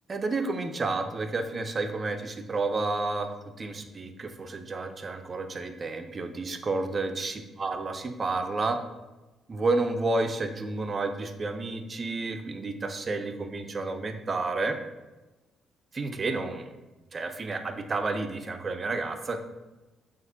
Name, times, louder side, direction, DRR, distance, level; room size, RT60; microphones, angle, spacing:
voice 1, 0.1-3.3 3.6-8.8 9.5-14.8 15.9-16.7 17.1-19.4, right 3 dB, 35° right, 7 dB, 0.4 m, -30 dB
6.9 x 2.4 x 2.7 m, 1.1 s
cardioid pair, 90°, 0 cm